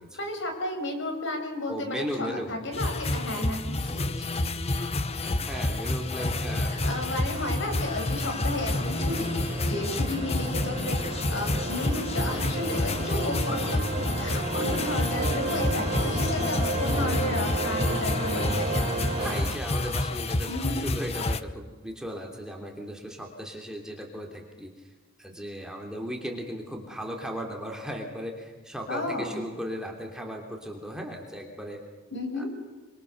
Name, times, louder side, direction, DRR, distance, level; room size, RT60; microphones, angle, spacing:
voice 1, 0.1-4.0 6.7-13.8 14.2-18.9 20.5-20.8 28.9-29.4 32.1-32.5, left 2 dB, 55° left, 4 dB, 6.1 m, -33 dB
voice 2, 1.7-2.6 3.9-4.3 5.2-6.8 13.0-13.3 19.1-24.9 25.2-31.8 32.4-32.5, equal, 5° right, 1 dB, 3.2 m, -37 dB
sound 1, 2.7-21.4, left 2 dB, 30° left, 0.9 m, -29 dB
sound 2, 4.8-19.6, right 2 dB, 25° right, 5.6 m, -32 dB
26.5 x 26.0 x 6.8 m, 1.3 s
head